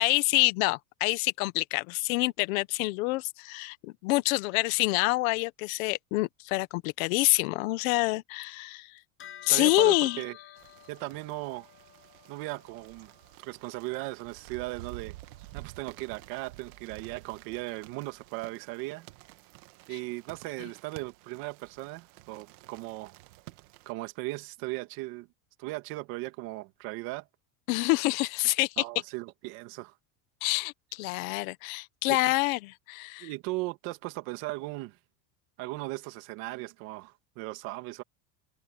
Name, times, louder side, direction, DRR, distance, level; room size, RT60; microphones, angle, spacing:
voice 1, 0.0-8.9 9.4-10.2 27.7-28.8 30.4-33.3, left 22 dB, 65° left, 1.4 m, -27 dB
Bell, 9.2-18.9, left 10 dB, 25° left, 7.1 m, -55 dB
voice 2, 9.5-10.4 10.9-11.7 12.3-13.1 13.4-15.2 15.5-19.1 19.9-23.2 23.9-25.3 25.6-27.3 28.8-29.9 32.1-32.2 33.2-35.0 35.6-38.0, right 21 dB, 50° right, 2.3 m, -37 dB
sound 1, 10.6-23.9, right 19 dB, 70° right, 1.9 m, -51 dB
cardioid pair, 170°, 45 cm